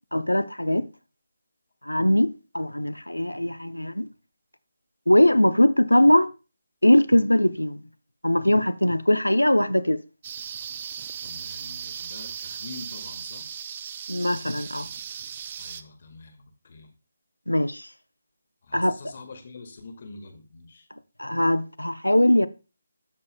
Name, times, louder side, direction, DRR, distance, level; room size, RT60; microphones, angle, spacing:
voice 1, 0.1-0.9 1.8-4.1 5.1-6.3 6.8-7.8 8.2-10.0 14.1-14.9 17.5-17.9 18.7-19.0 21.2-22.5, left 1 dB, 85° left, 0.5 m, -21 dB
sound 1, 10.2-15.8, right 8 dB, 30° right, 0.4 m, -37 dB
voice 2, 11.2-13.5 15.6-16.9 18.6-20.9, left 3 dB, 45° left, 1.7 m, -45 dB
13.5 x 5.4 x 2.2 m
figure-of-eight pair, 150°, 0 cm